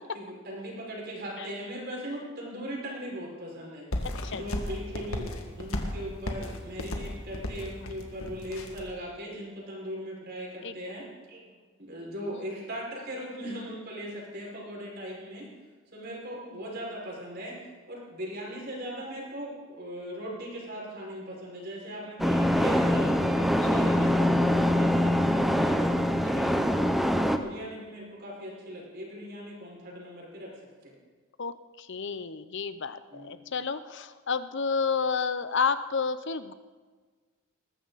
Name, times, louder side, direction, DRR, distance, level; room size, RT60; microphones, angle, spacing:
voice 1, 0.1-3.9 4.3-11.5 11.8-15.5 15.9-17.6 17.9-25.8 26.2-26.7 27.4-30.5 30.8-30.9 33.1-33.4, equal, 45° right, -3 dB, 5.5 m, -39 dB
sound 1, 3.9-8.9, left 1 dB, 70° left, 1.9 m, -35 dB
voice 2, 4.0-4.4 10.6-10.8 16.5-16.6 31.4-36.5, left 5 dB, 55° left, 13 dB, 0.7 m, -31 dB
sound 2, 22.2-27.4, equal, ahead, 0.7 m, -24 dB
20.5 x 15.0 x 4.1 m, 1.4 s
head